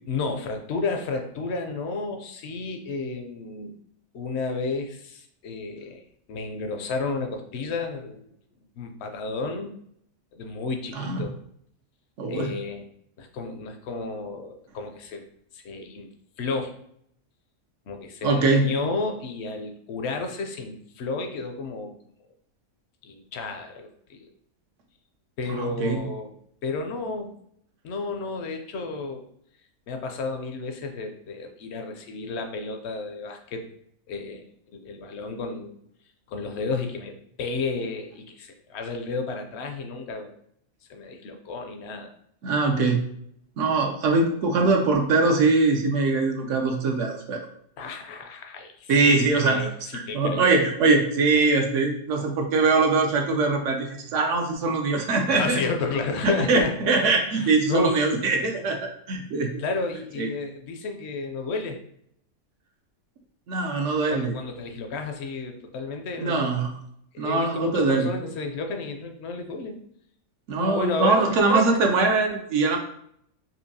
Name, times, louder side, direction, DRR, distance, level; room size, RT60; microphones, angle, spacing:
voice 1, 0.1-3.8 4.1-6.0 6.3-8.2 8.8-9.7 10.3-11.4 12.3-12.9 13.2-15.2 15.5-16.1 16.4-16.8 17.9-21.9 23.0-24.3 25.4-26.3 26.6-27.4 27.8-29.2 29.9-33.7 34.1-34.4 34.7-35.7 36.3-40.3 40.9-42.1 47.8-48.9 49.3-50.6 55.3-56.8 57.3-58.0 59.6-61.8 64.1-66.7 67.1-69.8 70.6-71.7, left 3 dB, 65° left, 5 dB, 0.7 m, -32 dB
voice 2, 10.9-11.3 12.2-12.6 18.2-18.7 25.6-26.0 42.4-43.0 43.6-47.5 48.9-49.6 49.9-55.6 56.2-59.5 60.2-60.3 63.5-64.3 66.2-66.7 67.2-68.1 70.5-72.8, right 3 dB, 65° right, 2 dB, 0.9 m, -22 dB
4.4 x 2.7 x 2.7 m, 0.69 s
omnidirectional pair, 1.5 m